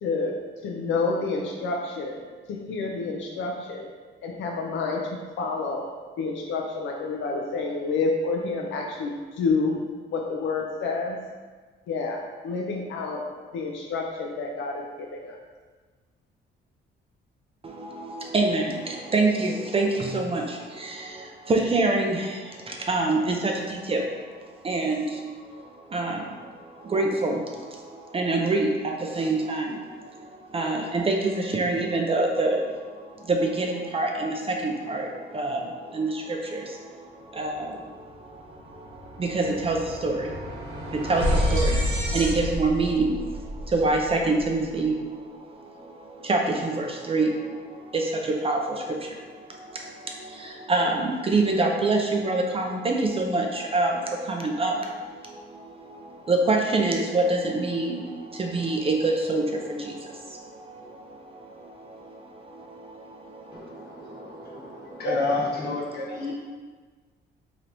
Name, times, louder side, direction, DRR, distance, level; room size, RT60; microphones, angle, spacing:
voice 1, 0.0-0.3 0.6-2.2 2.5-3.9 4.2-5.8 6.2-9.8 10.1-11.2 11.9-13.2 13.5-15.4, left 3 dB, 75° left, 0 dB, 0.4 m, -29 dB
voice 2, 17.6-65.1 65.7-66.3, right 2 dB, 30° right, 1 dB, 0.4 m, -27 dB
sound 1, 38.0-38.2 38.5-44.7, equal, 70° right, 0.9 m, -29 dB
voice 3, 63.5-66.3, left 2 dB, 55° left, -6 dB, 1.1 m, -30 dB
3.2 x 2.9 x 2.6 m, 1.4 s
cardioid pair, 90°, 20 cm